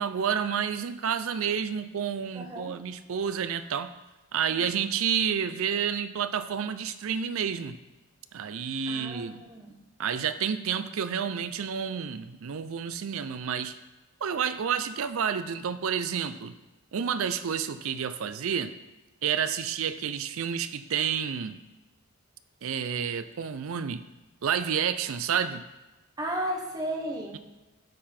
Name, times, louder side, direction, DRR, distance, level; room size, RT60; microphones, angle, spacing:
voice 1, 0.0-3.9 4.3-7.8 8.3-9.4 10.0-13.7 14.2-16.5 16.9-18.7 19.2-21.6 22.6-24.0 24.4-25.6, right 7 dB, 65° right, 12 dB, 0.4 m, -30 dB
voice 2, 2.3-2.7 4.5-4.7 8.9-9.8 26.2-27.4, right 1 dB, 15° right, 1 dB, 0.9 m, -34 dB
11.5 x 3.9 x 4.3 m, 1.1 s
head